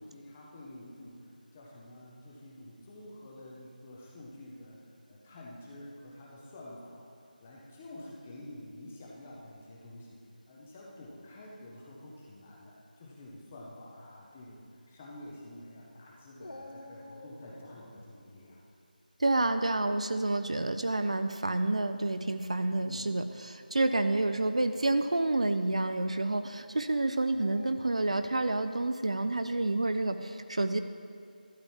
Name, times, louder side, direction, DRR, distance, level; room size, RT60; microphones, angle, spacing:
voice 1, 0.0-4.8 5.1-7.0 7.4-10.2 10.5-18.6 22.7-23.1 27.3-27.6, left 1 dB, 10° left, -4 dB, 0.5 m, -49 dB
Dog, 16.4-18.1 20.1-20.6 21.4-21.5 23.7-24.9 27.4-28.4, left 2 dB, 70° left, 1.0 m, -49 dB
voice 2, 19.2-30.8, right 2 dB, 45° right, 9 dB, 0.4 m, -29 dB
12.5 x 8.7 x 4.3 m, 2.3 s
figure-of-eight pair, 175°, 5 cm